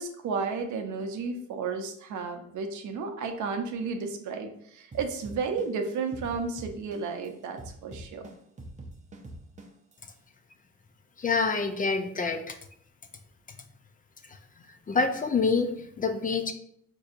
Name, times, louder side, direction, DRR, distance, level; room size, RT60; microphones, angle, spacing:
voice 1, 0.0-8.2, right 4 dB, 75° right, 5 dB, 0.7 m, -33 dB
sound 1, 4.9-7.3 7.6-9.9, right 1 dB, 25° right, 0.6 m, -43 dB
voice 2, 11.2-12.6 14.9-16.5, left 4 dB, 30° left, 7 dB, 0.4 m, -27 dB
4.6 x 2.7 x 2.5 m, 0.69 s
cardioid pair, 90°, 30 cm